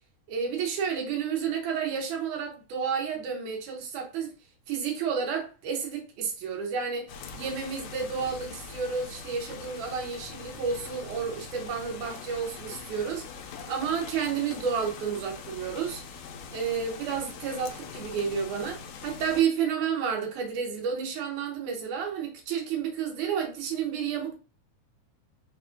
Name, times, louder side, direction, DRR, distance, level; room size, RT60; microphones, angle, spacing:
voice 1, 0.3-4.3 4.7-13.3 13.7-16.0 16.5-24.4, right 6 dB, 90° right, 2.4 m, -31 dB
sound 1, 7.1-19.4, left 5 dB, 75° left, 1.6 m, -43 dB
5.1 x 2.5 x 3.7 m
omnidirectional pair, 3.4 m